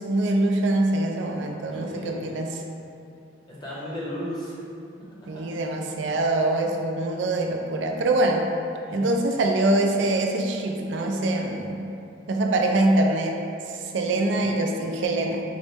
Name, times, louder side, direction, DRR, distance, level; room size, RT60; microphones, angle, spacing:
voice 1, 0.0-2.5 5.3-8.4 8.9-11.9 12.3-13.4 13.7-15.4, right 2 dB, 65° right, 2 dB, 0.3 m, -24 dB
voice 2, 1.7-2.5 3.5-4.6 8.9-9.2 14.3-14.5, equal, 20° left, -8 dB, 0.7 m, -35 dB
4.3 x 2.1 x 3.3 m, 2.6 s
head